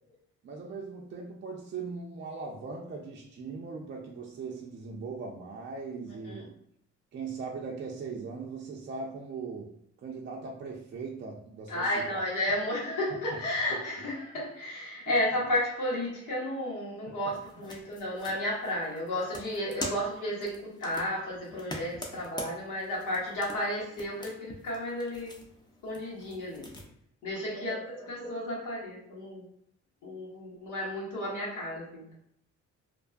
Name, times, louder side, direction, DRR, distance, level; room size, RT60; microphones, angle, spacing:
voice 1, 0.4-6.5 7.1-12.2 13.3-13.4 17.1-17.7 27.5-28.0, right 4 dB, 40° right, -1 dB, 0.4 m, -40 dB
voice 2, 11.7-25.3 25.8-26.7 27.2-29.4 30.0-32.1, left 1 dB, 85° left, -5 dB, 1.3 m, -33 dB
sound 1, 17.3-26.9, left 1 dB, 15° left, 0.5 m, -45 dB
2.6 x 2.2 x 2.4 m, 0.72 s
cardioid pair, 90°, 30 cm